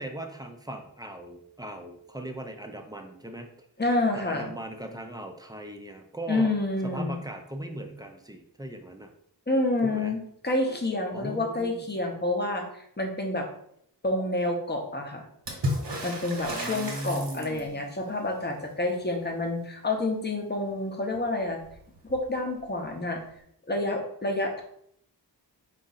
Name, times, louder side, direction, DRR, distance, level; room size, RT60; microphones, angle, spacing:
voice 1, 0.0-3.5 4.1-6.6 6.8-9.1 9.8-10.1 11.1-11.9 16.5-17.8, right 1 dB, 10° right, 4 dB, 0.5 m, -38 dB
voice 2, 3.8-4.5 6.3-7.2 9.5-13.5 14.0-15.3 16.0-21.6 22.0-23.2 23.7-24.6, left 2 dB, 25° left, 2 dB, 0.8 m, -28 dB
Water / Splash splatter, 15.5-17.9 21.1-21.2 21.5-22.3 23.3-23.4, equal, 85° right, 1.1 m, -33 dB
4.6 x 2.5 x 4.0 m, 0.70 s
wide cardioid pair, 75°, 41 cm